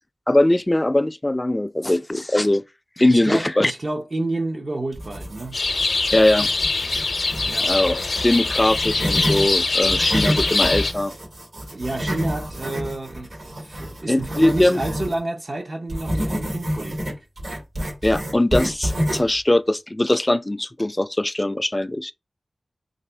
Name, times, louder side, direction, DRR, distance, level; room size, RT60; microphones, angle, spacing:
voice 1, 0.3-2.6 3.0-3.7 6.1-6.5 7.6-11.1 14.1-14.8 18.0-22.1, left 1 dB, 25° left, 0.3 m, -20 dB
voice 2, 3.1-5.6 7.4-7.7 11.7-17.3, right 2 dB, 55° right, 0.6 m, -30 dB
sound 1, 4.9-5.7 6.1-9.4 9.8-15.2 15.9-19.4, equal, 80° right, 2.6 m, -28 dB
sound 2, 5.5-10.9, left 3 dB, 80° left, 0.6 m, -23 dB
4.0 x 3.5 x 3.3 m
wide cardioid pair, 60°, 0 cm